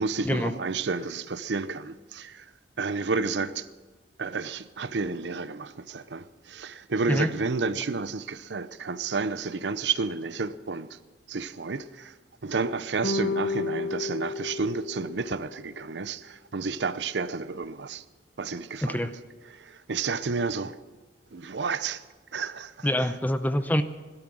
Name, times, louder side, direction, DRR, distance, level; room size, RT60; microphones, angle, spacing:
voice 1, 0.0-2.4 2.8-3.7 4.2-11.0 11.3-12.1 12.4-18.0 18.4-19.1 19.5-20.8 21.3-22.0 22.3-23.1, right 4 dB, 85° right, 0.7 m, -31 dB
sound 1, 13.0-15.6, left 3 dB, 70° left, 1.0 m, -31 dB
voice 2, 18.8-19.1 22.8-23.8, equal, 10° left, 0.7 m, -25 dB
18.0 x 12.5 x 6.2 m
head